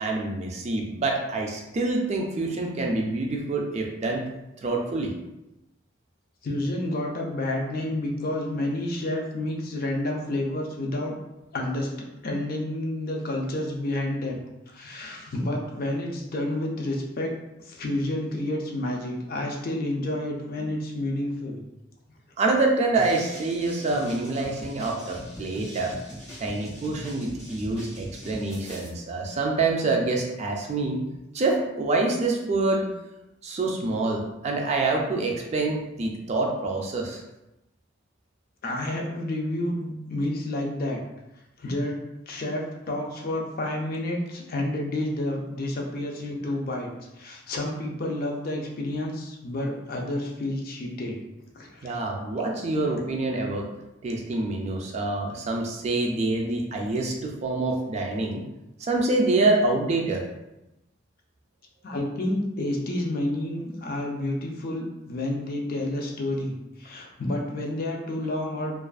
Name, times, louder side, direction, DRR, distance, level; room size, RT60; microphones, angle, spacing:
voice 1, 0.0-4.2 4.6-5.1 22.4-25.9 26.4-31.0 31.3-32.9 33.4-37.2 51.8-53.7 54.0-58.4 58.8-60.3, right 2 dB, 35° right, 0 dB, 0.3 m, -26 dB
voice 2, 6.4-11.2 11.5-14.4 14.7-17.3 17.6-21.6 38.6-41.0 41.6-42.0 42.3-46.9 47.1-51.2 51.5-52.0 61.8-68.7, left 1 dB, 45° left, 0 dB, 0.4 m, -30 dB
sound 1, 22.9-28.9, equal, 15° left, 1.2 m, -41 dB
2.4 x 2.3 x 2.3 m, 0.94 s
head